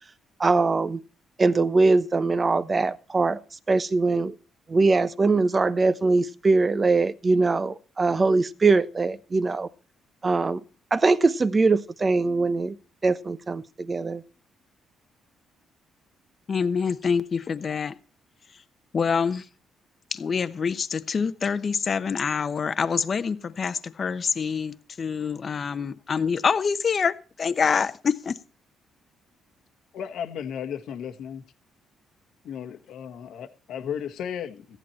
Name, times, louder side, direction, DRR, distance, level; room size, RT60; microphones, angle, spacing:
voice 1, 0.4-1.0 1.4-3.4 3.7-4.3 4.7-9.7 10.2-10.6 10.9-12.8 13.0-14.2, right 3 dB, 30° right, 1.0 m, -22 dB
voice 2, 16.5-17.9 18.9-19.4 20.1-28.3, left 6 dB, 45° left, 1.0 m, -26 dB
voice 3, 29.9-31.4 32.4-34.8, left 8 dB, 80° left, 1.5 m, -34 dB
15.0 x 11.0 x 4.4 m
cardioid pair, 90°, 0 cm